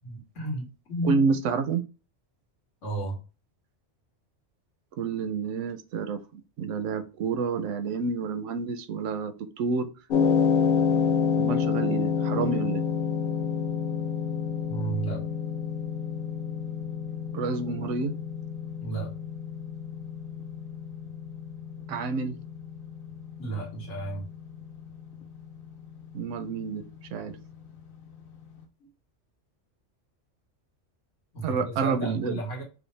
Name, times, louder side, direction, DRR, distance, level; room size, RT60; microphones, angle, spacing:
voice 1, 0.0-1.2 2.8-3.2 14.7-15.2 18.8-19.1 23.4-24.3 28.8-28.9 31.3-32.6, right 2 dB, 90° left, 0 dB, 1.6 m, -33 dB
voice 2, 1.1-1.8 5.0-9.9 11.4-12.8 17.3-18.1 21.9-22.4 26.1-26.8 27.1-27.3 31.4-32.4, right 5 dB, 85° right, 8 dB, 1.0 m, -29 dB
sound 1, 10.1-28.4, left 6 dB, 55° left, 0.8 m, -29 dB
4.8 x 2.1 x 3.2 m, 0.32 s
omnidirectional pair, 1.2 m